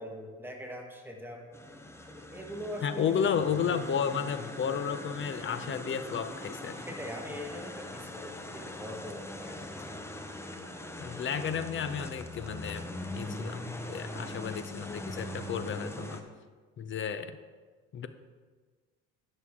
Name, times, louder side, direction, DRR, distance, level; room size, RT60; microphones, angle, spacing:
voice 1, 0.0-1.5 2.3-3.3 6.8-9.6 9.9-10.0, equal, 5° right, 0 dB, 1.4 m, -42 dB
sound 1, 1.5-16.2, left 1 dB, 10° left, 0.7 m, -41 dB
voice 2, 2.8-6.8 11.0-13.6 13.9-16.2 16.8-17.4 17.9-18.1, left 7 dB, 40° left, 11 dB, 0.6 m, -32 dB
11.0 x 6.4 x 3.6 m, 1.4 s
cardioid pair, 95°, 31 cm